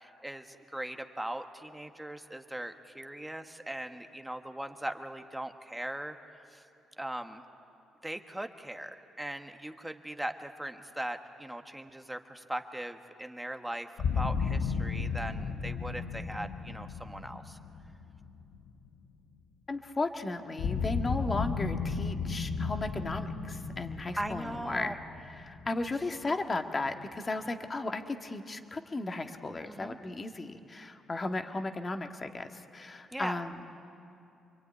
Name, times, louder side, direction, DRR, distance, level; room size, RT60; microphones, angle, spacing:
voice 1, 0.0-6.6 7.0-7.4 8.0-17.6 24.2-24.9 29.6-30.0 33.1-33.4, right 1 dB, 5° right, 6 dB, 1.4 m, -39 dB
sound 1, 14.0-18.9 20.6-26.2, left 5 dB, 70° left, 1.4 m, -34 dB
voice 2, 19.7-25.0 25.3-33.6, left 2 dB, 30° left, 6 dB, 1.6 m, -35 dB
27.0 x 23.0 x 9.6 m, 2.7 s
cardioid pair, 90°, 0 cm